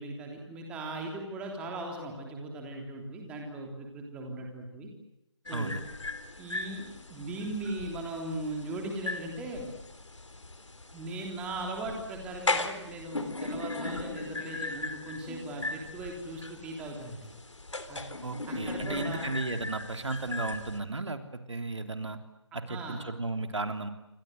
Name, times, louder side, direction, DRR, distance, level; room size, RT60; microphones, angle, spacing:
voice 1, 0.0-4.9 5.5-5.8 6.4-6.8 7.1-9.7 10.9-17.3 17.9-18.1 18.5-19.3 22.7-23.1, right 2 dB, 5° right, 2 dB, 3.3 m, -38 dB
sound 1, 5.5-20.8, left 2 dB, 85° left, 3.8 m, -38 dB
voice 2, 18.2-22.2 22.5-23.9, right 3 dB, 75° right, 7 dB, 3.4 m, -34 dB
29.0 x 24.5 x 8.0 m, 0.89 s
figure-of-eight pair, 165°, 15 cm